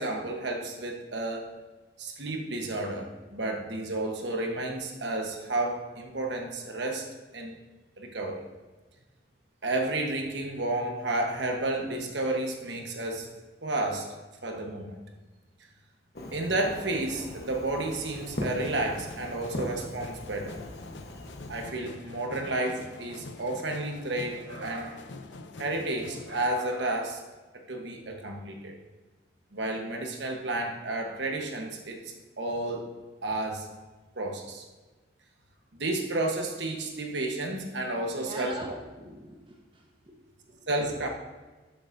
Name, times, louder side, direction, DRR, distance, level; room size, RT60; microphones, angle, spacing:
voice 1, 0.0-1.5 2.0-7.1 7.3-7.5 8.0-8.4 9.6-13.3 13.6-14.1 14.4-15.0 16.3-20.6 21.5-25.0 25.6-27.2 27.5-28.8 29.5-32.9 33.2-33.7 34.1-34.6 35.8-38.6 40.7-41.1, right 2 dB, 70° right, 2 dB, 1.2 m, -31 dB
Fireworks, 16.2-21.7, left 1 dB, 55° left, 1.1 m, -39 dB
sound 1, 18.2-26.5, left 2 dB, 75° left, 0.6 m, -45 dB
voice 2, 38.0-41.1, right 1 dB, 25° right, 0 dB, 1.2 m, -43 dB
12.5 x 6.9 x 2.7 m, 1.3 s
head